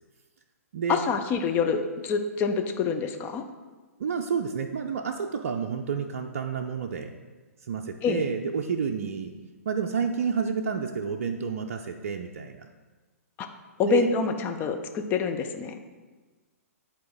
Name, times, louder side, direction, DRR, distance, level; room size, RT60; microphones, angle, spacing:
voice 1, 0.9-3.4 8.0-8.2 13.4-13.5 13.8-15.8, left 5 dB, 25° left, 6 dB, 0.5 m, -26 dB
voice 2, 4.0-7.1 7.7-9.3 9.7-12.7 13.8-14.1, right 6 dB, 55° right, 4 dB, 0.5 m, -29 dB
10.0 x 4.1 x 3.8 m, 1.3 s
figure-of-eight pair, 120°, 8 cm